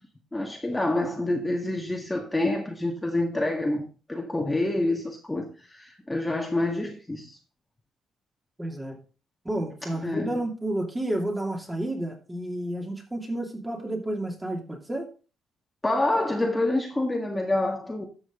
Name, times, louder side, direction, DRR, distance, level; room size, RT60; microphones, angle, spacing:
voice 1, 0.3-7.4 10.0-10.4 15.8-18.1, left 2 dB, 15° left, 1.8 m, -27 dB
voice 2, 8.6-9.0 9.4-15.1, right 1 dB, 15° right, 2.7 m, -31 dB
12.5 x 6.3 x 3.8 m
cardioid pair, 90°, 0 cm